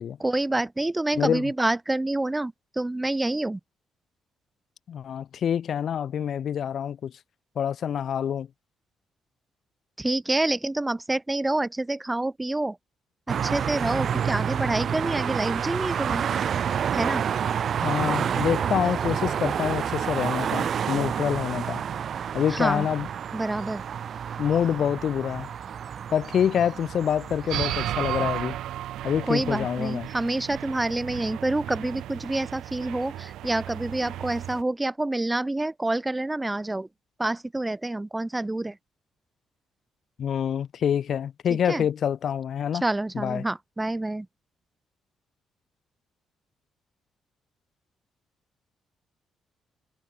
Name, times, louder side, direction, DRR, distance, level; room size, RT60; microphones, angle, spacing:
voice 1, 0.2-3.6 10.0-12.8 13.3-16.2 16.9-17.3 22.5-22.9 23.3-23.8 29.3-36.9 37.2-38.8 41.7-41.9 42.8-44.3, right 2 dB, 15° right, 5.6 m, -27 dB
voice 2, 1.2-1.5 4.9-7.1 7.6-8.5 17.8-21.8 22.3-23.1 24.4-25.5 26.1-28.6 29.0-30.1 40.2-42.8 43.1-43.5, left 8 dB, 60° left, 7.1 m, -26 dB
sound 1, 13.3-28.4, right 8 dB, 55° right, 2.8 m, -29 dB
sound 2, 27.5-34.6, right 12 dB, 80° right, 3.4 m, -34 dB
cardioid pair, 90°, 0 cm